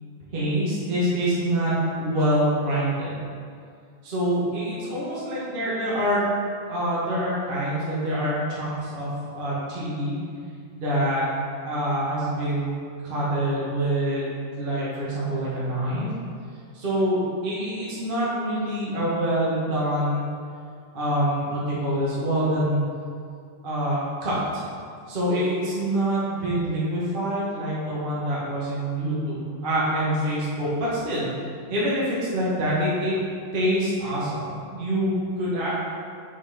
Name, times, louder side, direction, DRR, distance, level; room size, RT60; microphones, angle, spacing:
voice 1, 0.3-3.1 4.0-6.2 6.7-10.2 10.7-11.2 11.6-12.8 13.0-16.1 16.7-20.3 20.9-22.8 23.6-24.6 25.1-31.3 31.7-33.1 33.5-35.8, right 1 dB, 40° right, -8 dB, 0.7 m, -25 dB
6.3 x 5.5 x 4.2 m, 2.3 s
omnidirectional pair, 3.8 m